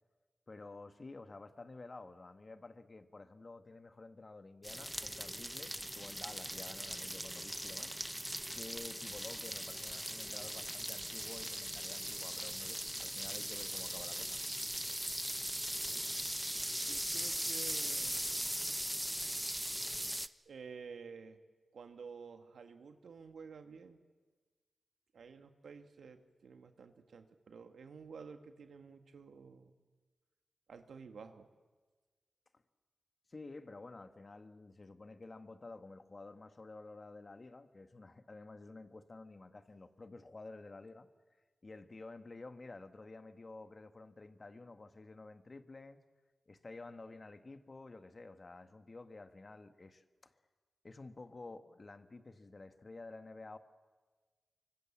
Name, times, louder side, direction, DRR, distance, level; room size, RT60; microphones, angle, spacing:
voice 1, 0.5-7.9 8.5-14.4 33.3-41.1 41.6-46.0 46.5-50.3 50.8-53.6, left 3 dB, 40° left, 9 dB, 1.6 m, -51 dB
sound 1, 4.6-20.3, equal, 5° right, 0.8 m, -39 dB
voice 2, 16.8-18.6 20.4-21.4 21.7-24.0 25.1-29.7 30.7-31.5, right 5 dB, 85° right, 7 dB, 1.7 m, -52 dB
25.0 x 24.5 x 7.3 m, 1.4 s
cardioid pair, 60°, 0 cm